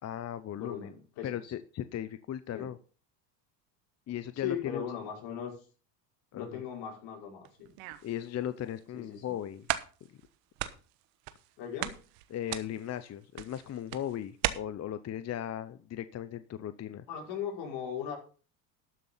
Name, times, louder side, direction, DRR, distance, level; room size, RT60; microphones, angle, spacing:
voice 1, 0.0-0.9 1.2-2.8 4.1-4.8 6.3-6.6 8.0-9.7 12.3-17.1, left 10 dB, 30° left, 13 dB, 0.7 m, -37 dB
voice 2, 0.6-1.5 2.5-2.7 4.3-5.6 6.3-7.7 8.9-9.4 11.6-12.0 16.8-18.2, left 8 dB, 65° left, 0 dB, 5.5 m, -38 dB
sound 1, 7.4-8.2 8.8-8.9 9.3-9.4 9.7-10.3 10.6-11.5 11.8-14.5, right 16 dB, 70° right, 1.3 m, -36 dB
12.5 x 6.9 x 5.6 m, 0.37 s
supercardioid pair, 100°, 50 cm